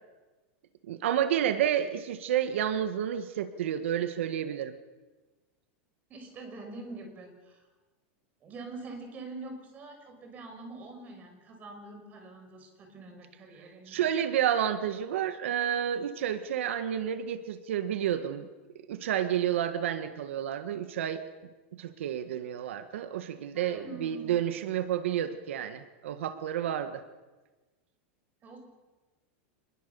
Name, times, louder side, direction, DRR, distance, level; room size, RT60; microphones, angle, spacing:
voice 1, 0.9-4.7 13.9-18.5 18.9-21.2 21.8-27.0, right 10 dB, 90° right, 10 dB, 1.6 m, -30 dB
voice 2, 6.1-7.6 8.4-14.1 23.5-24.4 28.4-28.6, right 2 dB, 25° right, 4 dB, 5.7 m, -45 dB
26.0 x 21.5 x 7.0 m, 1.2 s
supercardioid pair, 165°, 7 cm